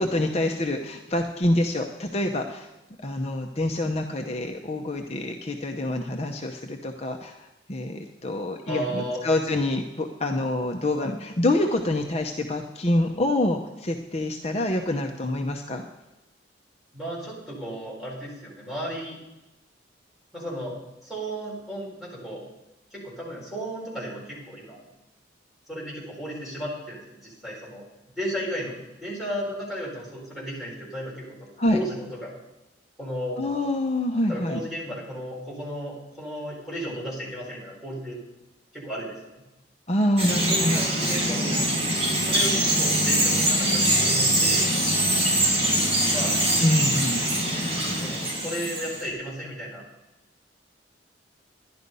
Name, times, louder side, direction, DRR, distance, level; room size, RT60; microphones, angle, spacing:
voice 1, 0.0-2.7 3.0-15.8 31.6-31.8 33.4-34.6 39.9-41.1 46.6-47.2, left 1 dB, 35° left, 4 dB, 0.7 m, -26 dB
voice 2, 8.6-9.3 16.9-19.2 20.3-20.7 21.0-22.4 22.9-24.9 25.7-27.8 28.2-28.7 29.0-31.3 31.7-32.3 33.0-33.4 34.3-38.2 38.7-39.4 40.5-41.6 42.2-44.7 46.1-46.4 48.0-49.8, equal, ahead, -6 dB, 4.5 m, -34 dB
Bird vocalization bird call bird song, 40.2-49.1, right 1 dB, 30° right, 4.0 m, -23 dB
11.5 x 11.0 x 5.4 m, 1.0 s
head